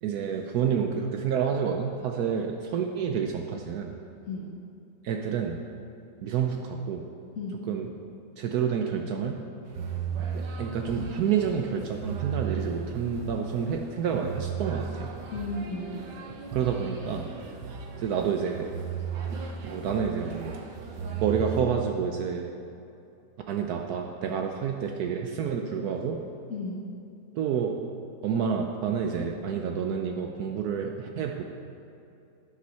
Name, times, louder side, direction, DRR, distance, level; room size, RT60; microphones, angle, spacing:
voice 1, 0.0-3.9 5.0-5.6 6.2-7.0 7.7-7.9 8.4-9.4 10.6-15.1 16.5-17.3 18.0-18.7 19.6-20.6 21.2-22.5 23.5-26.2 27.4-27.7 28.2-31.4, right 7 dB, 70° right, 3 dB, 1.1 m, -29 dB
voice 2, 7.4-7.7 15.3-16.0 26.5-26.9, left 2 dB, 50° left, -2 dB, 1.3 m, -34 dB
sound 1, 9.7-21.6, right 6 dB, 85° right, 1.5 m, -36 dB
11.0 x 6.2 x 5.6 m, 2.7 s
omnidirectional pair, 1.8 m